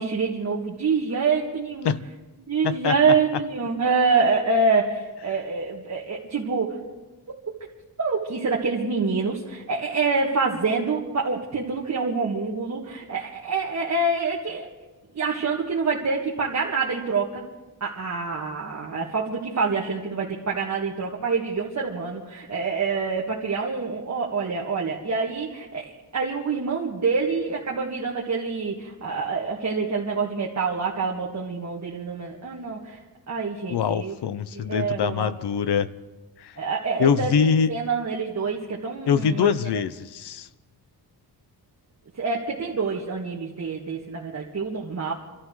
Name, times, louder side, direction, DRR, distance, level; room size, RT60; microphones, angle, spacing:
voice 1, 0.0-1.9 2.5-6.8 7.3-7.4 8.0-14.7 15.1-17.4 17.8-25.8 26.1-33.0 33.3-34.1 34.5-35.3 36.6-39.5 42.2-45.1, right 4 dB, 45° right, -3 dB, 1.8 m, -26 dB
voice 2, 2.6-3.0 33.7-35.9 36.4-36.6 37.0-37.8 39.1-40.5, left 7 dB, 85° left, 14 dB, 0.7 m, -23 dB
29.5 x 13.0 x 3.2 m, 1.2 s
wide cardioid pair, 115°, 39 cm